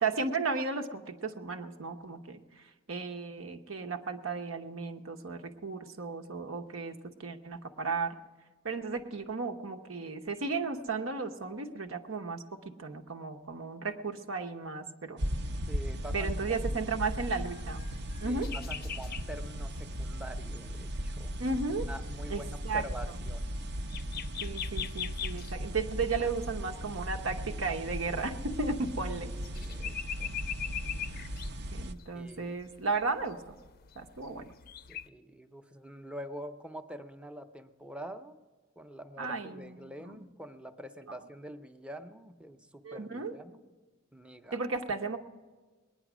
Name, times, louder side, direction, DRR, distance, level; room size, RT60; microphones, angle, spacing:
voice 1, 0.0-2.6 2.9-8.2 8.6-15.2 16.1-17.8 18.2-18.5 21.4-21.9 22.3-22.8 24.4-29.3 31.7-33.6 34.0-34.5 39.2-40.2 42.8-43.3 44.5-45.2, right 4 dB, 85° right, 5 dB, 1.0 m, -34 dB
sound 1, 15.2-31.9, equal, 60° right, 0.6 m, -37 dB
voice 2, 15.7-16.7 18.2-21.5 21.8-23.5 29.3-30.3 32.1-32.5 34.9-38.4 38.8-43.6 44.1-44.6, equal, 5° right, 8 dB, 0.6 m, -46 dB
sound 2, 17.1-35.1, left 9 dB, 50° left, 0.4 m, -44 dB
20.0 x 9.9 x 6.1 m, 1.4 s
head